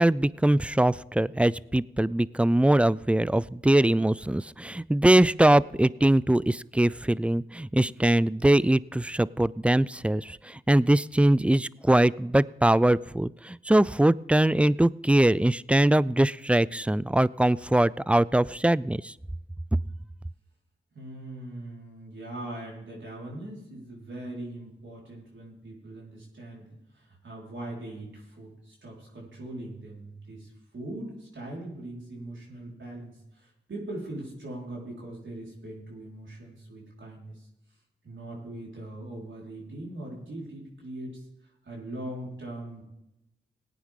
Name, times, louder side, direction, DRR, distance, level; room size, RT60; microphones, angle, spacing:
voice 1, 0.0-19.1, right 1 dB, 5° right, 21 dB, 0.3 m, -22 dB
voice 2, 20.9-37.5 38.0-42.9, right 1 dB, 65° right, -4 dB, 4.7 m, -41 dB
17.5 x 9.3 x 3.8 m, 0.93 s
cardioid pair, 45°, 21 cm